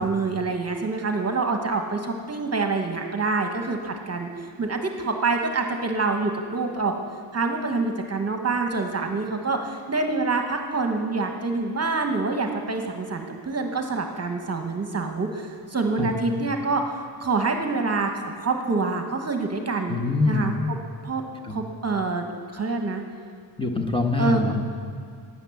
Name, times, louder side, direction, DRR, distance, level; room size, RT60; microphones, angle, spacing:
voice 1, 0.0-6.9 7.3-20.0 20.3-20.5 21.0-21.2 21.5-23.0 24.2-24.4, right 3 dB, 30° right, 4 dB, 1.1 m, -26 dB
voice 2, 19.9-20.6 21.4-21.6 23.6-24.8, left 3 dB, 10° left, 3 dB, 1.3 m, -24 dB
9.8 x 9.5 x 7.1 m, 2.3 s
cardioid pair, 80°, 49 cm